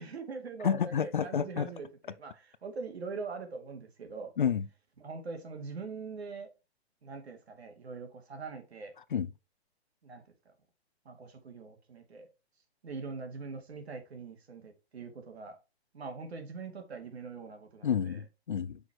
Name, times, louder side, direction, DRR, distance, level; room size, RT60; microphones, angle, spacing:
voice 1, 0.0-0.8 1.2-4.3 5.0-6.5 7.0-8.9 10.0-10.2 11.0-12.3 12.8-15.6 15.9-18.2, right 4 dB, 70° right, 2.6 m, -42 dB
voice 2, 0.6-1.7 4.4-4.7 9.1-9.3 17.8-18.8, left 8 dB, 50° left, 0.5 m, -30 dB
6.2 x 5.2 x 4.7 m
hypercardioid pair, 175°, 33 cm